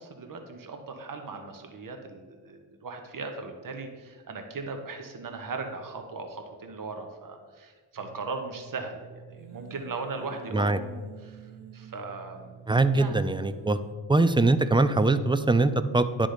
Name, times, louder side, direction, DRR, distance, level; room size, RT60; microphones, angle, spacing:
voice 1, 0.0-10.8 11.2-12.6 12.9-13.3 14.0-14.1, right 3 dB, 45° right, 5 dB, 1.2 m, -38 dB
sound 1, 8.0-13.9, right 7 dB, 65° right, 0.7 m, -48 dB
voice 2, 12.7-13.8 14.1-16.3, right 2 dB, 10° right, 11 dB, 0.4 m, -22 dB
10.0 x 3.7 x 5.0 m, 1.4 s
supercardioid pair, 55°, 46 cm